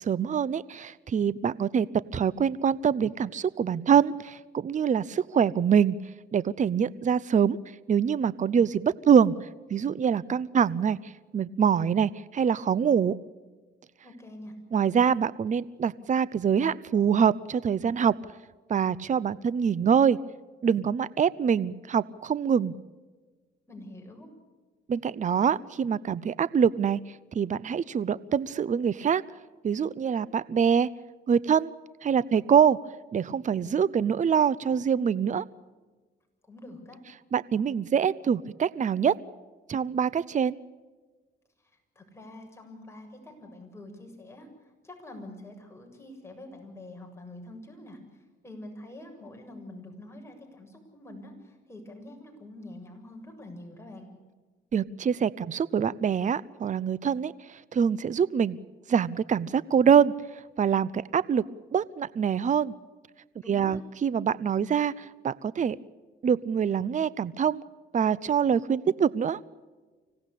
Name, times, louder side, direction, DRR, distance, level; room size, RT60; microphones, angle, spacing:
voice 1, 0.0-1.9 2.1-6.0 6.3-7.6 7.9-9.3 9.7-13.1 14.7-18.2 18.7-20.2 20.6-22.7 24.9-27.0 27.3-29.2 29.6-30.9 31.3-31.7 32.0-32.8 33.1-35.4 37.3-39.2 39.7-40.5 54.7-58.6 58.9-60.1 60.6-61.4 61.7-62.7 63.5-65.8 66.2-67.6 67.9-69.4, right 7 dB, 40° right, 19 dB, 0.7 m, -25 dB
voice 2, 14.0-14.5 23.7-24.3 36.4-37.0 41.6-54.1 63.4-63.8, left 1 dB, 15° left, 2 dB, 7.4 m, -46 dB
25.5 x 17.5 x 8.4 m, 1.3 s
cardioid pair, 90°, 20 cm